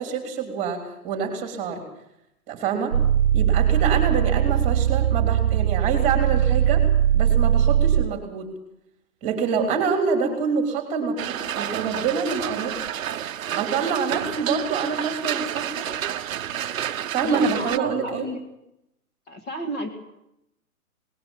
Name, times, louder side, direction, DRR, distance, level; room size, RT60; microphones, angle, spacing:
voice 1, 0.0-1.8 2.5-3.0 3.3-6.9 7.1-8.5 9.2-12.9 13.5-15.9 17.1-18.3, right 5 dB, 15° right, 4 dB, 3.4 m, -26 dB
sound 1, 2.9-8.2, right 10 dB, 90° right, 0.9 m, -20 dB
sound 2, 11.2-17.8, right 10 dB, 60° right, 0.9 m, -30 dB
voice 2, 17.2-18.4 19.3-19.9, right 1 dB, 25° left, 2 dB, 2.3 m, -31 dB
19.5 x 18.5 x 7.3 m, 0.84 s
hypercardioid pair, 160°, 44 cm